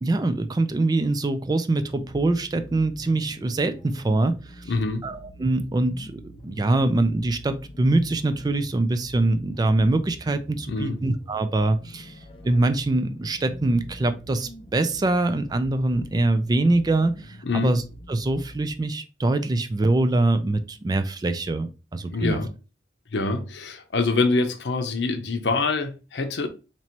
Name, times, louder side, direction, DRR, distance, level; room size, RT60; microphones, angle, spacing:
voice 1, 0.0-4.7 5.0-12.1 12.4-17.8 18.1-22.4, right 2 dB, 25° right, 0.3 m, -24 dB
sound 1, 2.0-18.9, equal, 30° left, 0.6 m, -45 dB
voice 2, 4.7-5.1 10.7-11.0 17.4-17.7 22.1-22.5 23.1-26.5, left 3 dB, 75° left, 0.6 m, -25 dB
3.0 x 2.9 x 4.3 m
head